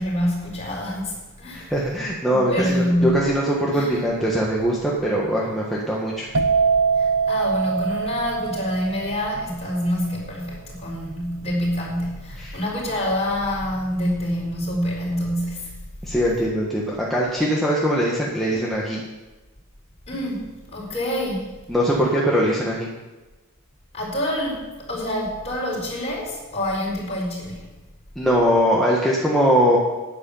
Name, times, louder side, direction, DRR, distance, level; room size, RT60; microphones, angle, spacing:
voice 1, 0.0-1.7 2.3-3.2 3.7-4.1 7.0-15.7 20.1-21.5 23.9-27.6, equal, 30° left, -3 dB, 4.5 m, -26 dB
voice 2, 1.5-6.3 12.4-12.6 16.0-19.0 21.7-22.9 28.1-29.8, equal, ahead, -5 dB, 1.5 m, -21 dB
sound 1, 6.3-13.9 14.2-14.7, right 5 dB, 60° right, 1.0 m, -24 dB
10.0 x 9.7 x 7.1 m, 1.2 s
head